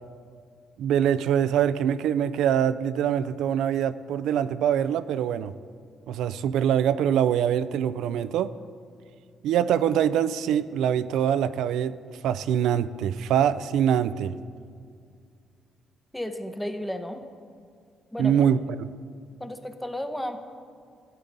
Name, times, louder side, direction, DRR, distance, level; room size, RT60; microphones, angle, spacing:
voice 1, 0.8-5.5 6.1-8.5 9.4-12.0 12.2-14.4 18.2-18.9, right 9 dB, 85° right, 14 dB, 0.3 m, -24 dB
voice 2, 16.1-17.2 18.1-18.3 19.4-20.4, left 1 dB, 5° left, 7 dB, 0.8 m, -33 dB
13.5 x 8.4 x 3.9 m, 2.2 s
cardioid pair, 90°, 0 cm